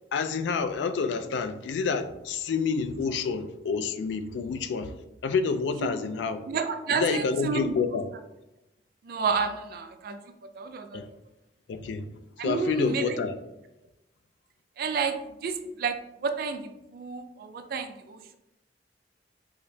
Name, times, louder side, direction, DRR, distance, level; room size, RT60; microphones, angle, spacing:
voice 1, 0.1-4.9 5.2-6.4 6.9-8.1 10.9-11.1 11.7-12.1 12.4-13.3, left 5 dB, 90° left, 0.3 m, -28 dB
voice 2, 6.5-7.7 9.0-10.2 10.5-11.0 12.4-13.2 14.8-18.4, right 5 dB, 55° right, 0.3 m, -30 dB
4.8 x 2.0 x 2.7 m
head